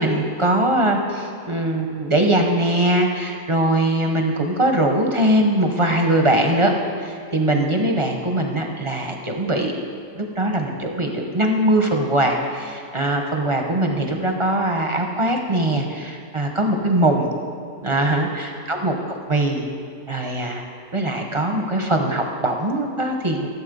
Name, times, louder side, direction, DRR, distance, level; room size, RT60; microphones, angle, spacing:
voice 1, 0.0-6.7 7.0-9.7 10.1-17.3 17.8-18.9 19.3-19.7 20.1-20.6 20.9-23.5, right 1 dB, 25° right, 2 dB, 0.7 m, -21 dB
13.0 x 7.5 x 5.2 m, 2.3 s
omnidirectional pair, 1.6 m